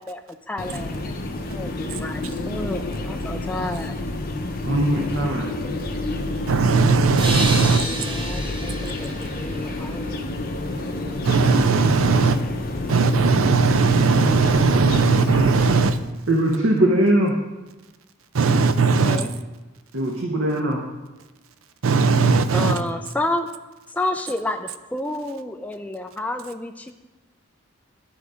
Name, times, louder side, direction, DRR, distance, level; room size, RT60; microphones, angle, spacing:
voice 1, 0.0-1.7 2.0-2.2 2.5-4.0 7.6-10.2 19.0-19.3 22.5-23.5 23.9-26.9, left 1 dB, 5° left, 6 dB, 0.3 m, -30 dB
sound 1, 0.6-15.8, left 2 dB, 45° left, 0.7 m, -29 dB
voice 2, 4.6-5.5 16.3-17.3 19.9-20.8, right 1 dB, 65° right, 0 dB, 0.9 m, -20 dB
voice 3, 6.5-7.9 11.2-12.4 12.9-16.0 18.3-19.2 21.8-22.8, right 4 dB, 80° right, 11 dB, 0.5 m, -18 dB
sound 2, 7.2-10.7, right 1 dB, 25° right, 0.8 m, -31 dB
11.5 x 4.0 x 4.9 m, 1.1 s
head